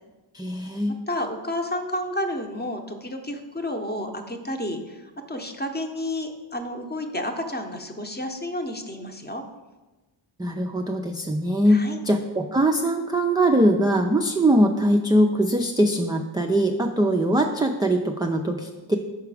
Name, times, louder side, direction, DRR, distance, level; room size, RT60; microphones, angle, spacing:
voice 1, 0.3-0.9 10.4-19.0, right 1 dB, 10° right, 2 dB, 0.3 m, -22 dB
voice 2, 1.1-9.4 11.7-12.0, left 1 dB, 20° left, 5 dB, 0.7 m, -31 dB
5.9 x 4.7 x 4.8 m, 1.2 s
cardioid pair, 80°, 49 cm